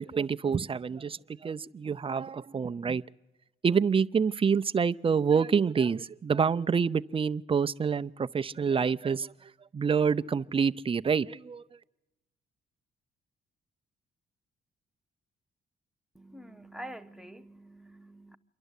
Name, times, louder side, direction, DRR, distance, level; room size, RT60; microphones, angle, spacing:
voice 1, 0.0-3.0 3.6-11.6, right 6 dB, 25° right, 0.6 m, -27 dB
voice 2, 16.1-18.4, right 1 dB, ahead, 1.0 m, -46 dB
27.5 x 11.5 x 8.2 m
cardioid pair, 90°, 20 cm